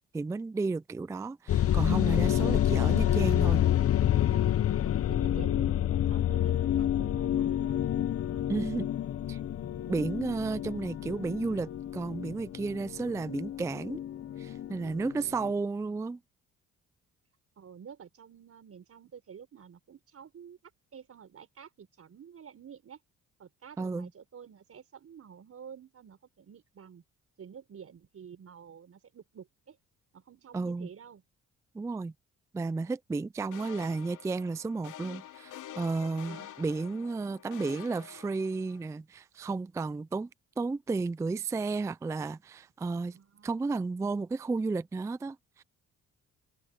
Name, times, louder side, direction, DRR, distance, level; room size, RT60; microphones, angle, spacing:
voice 1, 0.1-3.6 8.5-8.9 9.3-9.4 9.9-14.0 14.4-16.2 23.8-24.1 30.5-30.9 31.7-32.1 32.5-40.3 40.6-43.2 43.4-45.6, right 3 dB, 10° right, 0.3 m, -33 dB
sound 1, 1.5-15.5, left 11 dB, 50° left, 0.8 m, -28 dB
voice 2, 4.8-7.9 10.4-10.7 13.1-13.2 15.5-16.2 17.6-20.6 20.9-23.0 23.4-27.0 27.4-29.8 30.1-31.2 36.3-36.5 37.2-37.4 43.1-43.8, right 7 dB, 50° right, 5.8 m, -50 dB
sound 2, 33.5-38.8, left 12 dB, 80° left, 3.2 m, -47 dB
cardioid pair, 90°, 30 cm